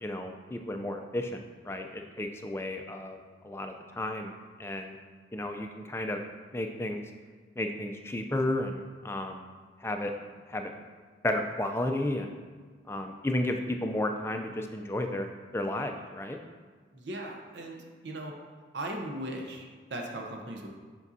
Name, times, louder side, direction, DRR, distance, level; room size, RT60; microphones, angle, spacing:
voice 1, 0.0-4.3 4.6-5.0 5.3-6.2 6.5-7.0 7.6-9.4 9.8-10.1 10.5-10.7 11.2-12.3 12.9-16.4, left 1 dB, 15° left, 4 dB, 0.4 m, -33 dB
voice 2, 16.9-18.3 18.7-20.7, right 1 dB, 75° right, 1 dB, 0.7 m, -38 dB
7.3 x 5.3 x 2.7 m, 1.5 s
head